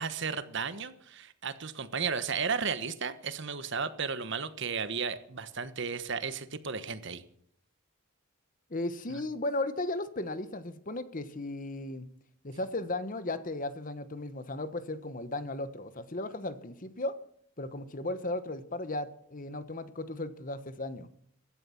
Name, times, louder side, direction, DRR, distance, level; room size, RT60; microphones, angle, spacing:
voice 1, 0.0-7.2 9.1-9.2, right 5 dB, 55° right, 13 dB, 1.3 m, -34 dB
voice 2, 8.7-12.1 12.4-17.1 17.6-21.1, left 2 dB, 40° left, 13 dB, 1.1 m, -35 dB
15.5 x 12.0 x 7.1 m, 0.64 s
head